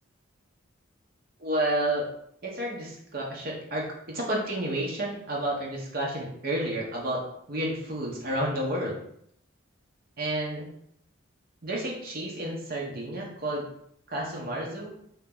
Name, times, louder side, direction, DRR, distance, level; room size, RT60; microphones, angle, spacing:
voice 1, 1.4-2.0 2.4-7.2 7.5-9.0 10.2-10.7 11.6-13.6 14.1-14.9, right 1 dB, 50° right, -2 dB, 0.9 m, -30 dB
2.9 x 2.8 x 3.7 m, 0.71 s
head